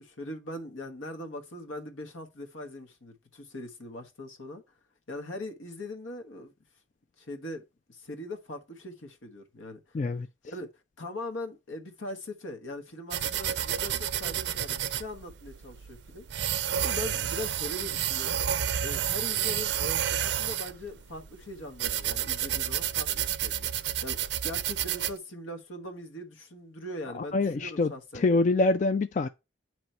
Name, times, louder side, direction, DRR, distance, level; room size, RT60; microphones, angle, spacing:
voice 1, 0.0-4.6 5.1-6.5 7.2-7.6 7.9-10.0 10.4-10.7 11.0-16.4 16.8-18.4 18.8-28.4, left 1 dB, 90° left, 1.2 m, -41 dB
voice 2, 9.9-10.3 27.1-29.3, left 3 dB, 40° left, 0.3 m, -25 dB
sound 1, 13.1-25.1, right 10 dB, 60° right, 0.4 m, -30 dB
9.0 x 3.1 x 4.2 m
head